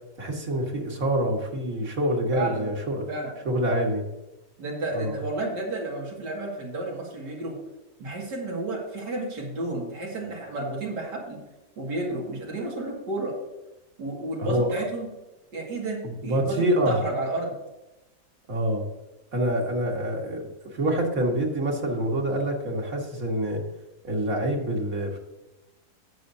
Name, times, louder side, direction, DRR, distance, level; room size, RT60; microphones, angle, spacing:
voice 1, 0.2-3.0 3.5-4.0 4.9-5.2 14.4-14.8 16.0-17.0 18.5-18.8 19.3-20.4 20.7-23.6 24.0-25.2, right 1 dB, 55° right, 0 dB, 2.2 m, -26 dB
voice 2, 2.3-2.7 3.1-3.3 4.6-7.5 8.0-11.4 11.8-13.4 14.0-15.1 15.5-17.6, right 2 dB, 90° right, -3 dB, 2.9 m, -31 dB
17.0 x 6.7 x 2.8 m, 1.0 s
omnidirectional pair, 1.8 m